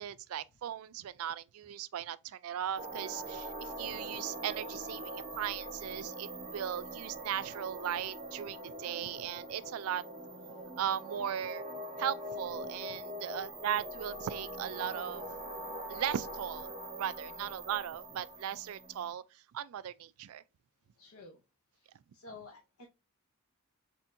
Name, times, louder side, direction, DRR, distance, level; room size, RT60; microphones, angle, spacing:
voice 1, 0.0-10.0 10.8-11.6 12.0-15.3 15.9-16.7 17.0-20.4, right 10 dB, 70° right, 0.3 m, -38 dB
sound 1, 2.8-19.1, right 1 dB, 30° right, 1.3 m, -43 dB
voice 2, 13.2-13.5 17.3-17.6 21.0-21.4 21.7-22.9, left 3 dB, 75° left, 0.8 m, -53 dB
4.3 x 3.4 x 2.5 m
head